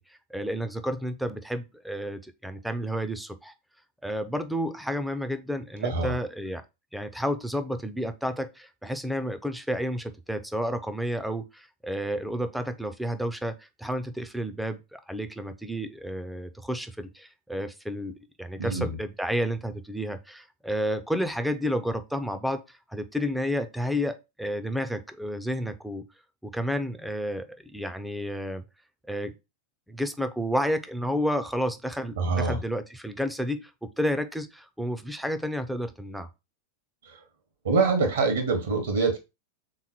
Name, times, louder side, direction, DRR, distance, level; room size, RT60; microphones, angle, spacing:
voice 1, 0.0-3.5 4.0-6.6 6.9-26.1 26.4-28.6 29.1-29.3 29.9-36.3, equal, ahead, 0.5 m, -31 dB
voice 2, 5.8-6.1 18.6-19.0 32.2-32.6 37.0-37.2 37.6-39.2, right 4 dB, 65° right, 1.1 m, -25 dB
3.7 x 3.1 x 4.3 m
figure-of-eight pair, 90°, 0 cm